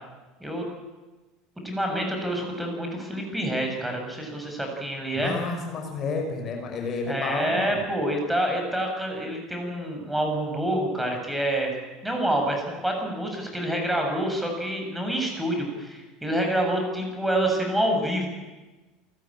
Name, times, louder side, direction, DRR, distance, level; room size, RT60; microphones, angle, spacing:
voice 1, 1.6-5.3 7.1-11.7 12.0-18.3, right 1 dB, 5° right, 2 dB, 7.7 m, -27 dB
voice 2, 5.2-7.9, left 4 dB, 40° left, 3 dB, 5.8 m, -31 dB
28.5 x 15.0 x 8.9 m, 1.2 s
figure-of-eight pair, 70°, 0 cm